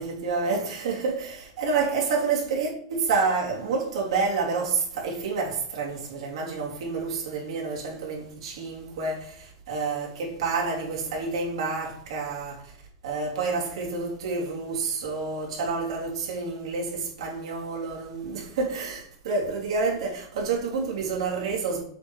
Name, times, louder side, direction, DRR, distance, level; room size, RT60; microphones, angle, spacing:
voice 1, 0.0-12.7 13.0-21.8, right 4 dB, 75° right, 2.8 m, -29 dB
7.3 x 5.0 x 4.4 m
supercardioid pair, 135°, 3 cm